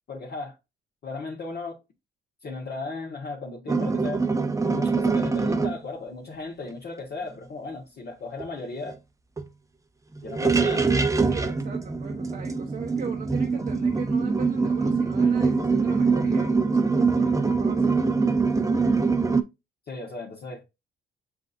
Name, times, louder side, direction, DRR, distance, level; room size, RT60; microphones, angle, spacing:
voice 1, 0.1-0.6 1.0-1.8 2.4-4.2 4.7-9.0 10.2-10.9 19.9-20.6, left 3 dB, 55° left, 1.4 m, -36 dB
sound 1, 3.7-5.8 8.4-8.5 8.8-8.9 9.4-9.5 10.2-19.4, right 4 dB, 15° right, 0.6 m, -23 dB
voice 2, 4.6-5.0 10.5-10.8 11.3-18.0, right 6 dB, 50° right, 0.9 m, -39 dB
7.4 x 2.7 x 2.5 m
cardioid pair, 90°, 20 cm